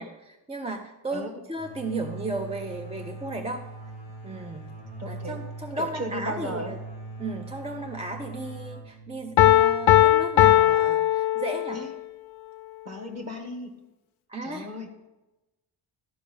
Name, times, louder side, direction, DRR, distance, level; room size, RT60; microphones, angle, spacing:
voice 1, 0.0-3.7 4.2-4.7 5.1-6.8 7.2-11.8 14.3-14.7, right 2 dB, 15° right, 4 dB, 0.4 m, -34 dB
sound 1, 1.5-11.0, right 2 dB, 75° right, 3.8 m, -41 dB
voice 2, 5.0-5.4 5.8-6.7 11.7-11.9 12.8-13.7 14.4-15.1, equal, 35° right, 4 dB, 1.5 m, -35 dB
Piano, 9.4-11.9, left 13 dB, 80° left, 0.6 m, -19 dB
12.5 x 5.1 x 5.4 m, 1.0 s
wide cardioid pair, 175°, 47 cm